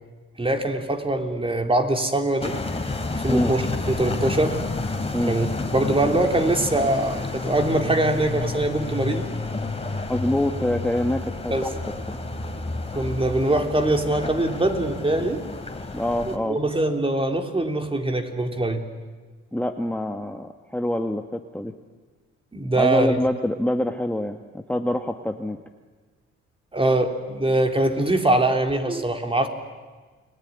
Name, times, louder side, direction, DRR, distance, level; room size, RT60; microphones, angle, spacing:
voice 1, 0.4-2.6 3.1-3.6 3.9-4.6 5.3-5.5 5.7-9.3 11.5-11.7 12.9-15.4 16.4-18.8 22.5-23.2 26.7-29.5, right 2 dB, 20° right, 5 dB, 3.3 m, -23 dB
sound 1, 2.4-16.4, left 3 dB, 20° left, 3.3 m, -30 dB
voice 2, 10.1-11.7 12.1-12.2 15.9-16.6 19.5-21.7 22.8-25.6, left 1 dB, 5° left, 5 dB, 1.4 m, -25 dB
30.0 x 20.5 x 9.8 m, 1.4 s
cardioid pair, 85°, 29 cm